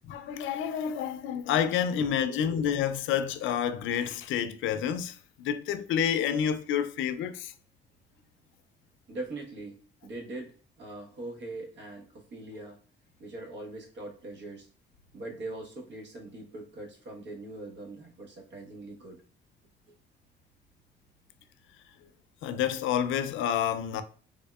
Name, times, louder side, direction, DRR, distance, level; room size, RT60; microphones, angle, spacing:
voice 1, 0.1-7.5 22.4-24.0, left 8 dB, 80° left, 0.4 m, -29 dB
voice 2, 2.1-2.9 9.1-12.8 13.2-14.7 15.1-19.2, right 2 dB, 65° right, 1.1 m, -42 dB
3.5 x 3.5 x 2.2 m
cardioid pair, 90°, 20 cm